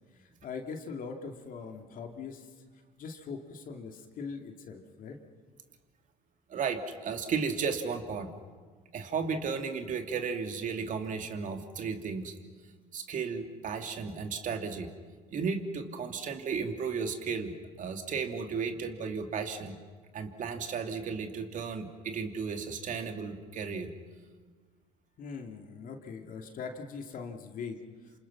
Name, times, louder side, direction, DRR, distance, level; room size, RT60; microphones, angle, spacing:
voice 1, 0.2-2.5 3.0-5.2 25.2-27.8, left 5 dB, 50° left, 4 dB, 2.7 m, -41 dB
voice 2, 6.5-8.3 8.9-12.3 12.9-14.9 15.3-17.5 17.8-19.8 20.1-23.9, right 5 dB, 45° right, 6 dB, 2.7 m, -34 dB
27.5 x 27.0 x 6.2 m, 1.5 s
hypercardioid pair, 70°, 17 cm